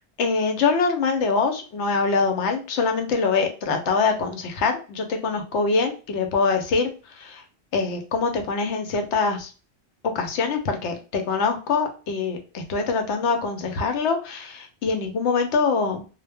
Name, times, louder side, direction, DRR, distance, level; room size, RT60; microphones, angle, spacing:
voice 1, 0.2-6.9 7.2-7.4 7.7-9.5 10.1-16.0, left 4 dB, 85° left, 5 dB, 0.9 m, -24 dB
2.1 x 2.1 x 3.3 m, 0.34 s
omnidirectional pair, 1.1 m